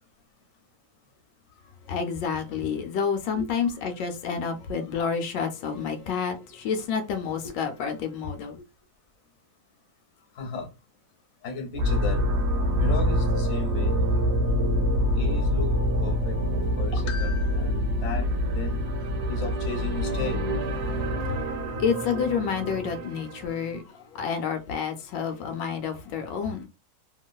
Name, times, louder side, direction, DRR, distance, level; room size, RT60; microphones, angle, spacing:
voice 1, 1.9-8.6 21.0-21.4 21.8-26.7, left 6 dB, 80° left, 1.2 m, -29 dB
voice 2, 10.3-10.7 11.4-12.3 12.8-14.0 15.1-15.7 16.0-16.4 16.8-18.8 19.3-20.5 21.5-21.9, left 4 dB, 50° left, 1.0 m, -35 dB
sound 1, 11.7-23.7, equal, 65° right, 0.7 m, -26 dB
2.9 x 2.5 x 2.2 m
omnidirectional pair, 1.9 m